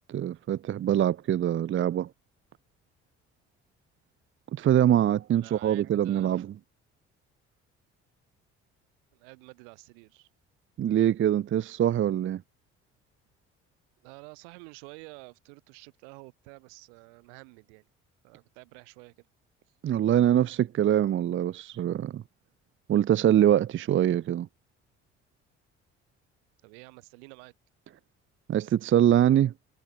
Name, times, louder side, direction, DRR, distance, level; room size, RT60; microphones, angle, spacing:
voice 1, 0.1-2.1 4.5-6.5 10.8-12.4 19.8-22.2 22.9-24.5 28.5-29.5, right 11 dB, 35° right, 0.6 m, -24 dB
voice 2, 5.3-6.5 9.1-10.3 14.0-17.9 18.2-19.3 26.6-27.5, right 36 dB, 75° right, 4.2 m, -49 dB
hypercardioid pair, 50°, 34 cm